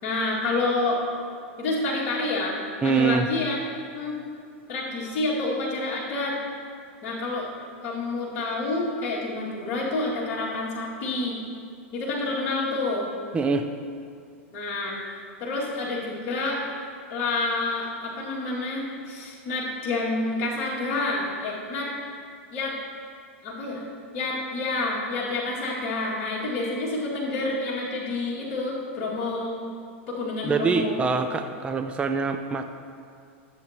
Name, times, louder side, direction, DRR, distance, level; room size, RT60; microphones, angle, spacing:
voice 1, 0.0-1.0 1.6-3.6 3.9-4.2 4.7-6.4 7.0-7.5 7.8-11.4 11.9-13.1 14.5-15.0 15.4-16.6 17.1-21.9 22.5-22.8 23.4-23.8 24.1-29.5 30.1-31.0, left 2 dB, 50° left, -6 dB, 2.3 m, -28 dB
voice 2, 2.8-3.3 13.3-13.7 30.4-32.6, right 5 dB, 15° right, 6 dB, 0.5 m, -24 dB
14.0 x 7.9 x 2.9 m, 2.3 s
hypercardioid pair, 115°, 7 cm